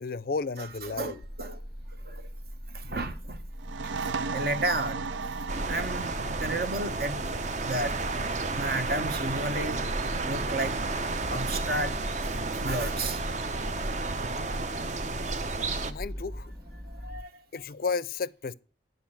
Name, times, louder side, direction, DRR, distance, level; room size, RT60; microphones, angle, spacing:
voice 1, 0.0-1.2 15.9-16.5 17.5-18.5, left 4 dB, 50° left, 0.5 m, -32 dB
voice 2, 0.6-1.6 1.9-2.3 2.7-3.4 3.8-3.9 4.3-5.0 5.7-6.1 6.4-7.3 7.6-8.0 8.5-9.9 10.2-10.8 11.3-13.2 16.8-17.4, right 2 dB, 55° right, 1.2 m, -33 dB
sound 1, 1.2-17.2, equal, 20° right, 1.8 m, -41 dB
sound 2, 3.5-10.9, right 4 dB, 90° right, 0.6 m, -38 dB
sound 3, 5.5-15.9, right 3 dB, 40° right, 0.7 m, -32 dB
10.5 x 5.5 x 5.7 m
head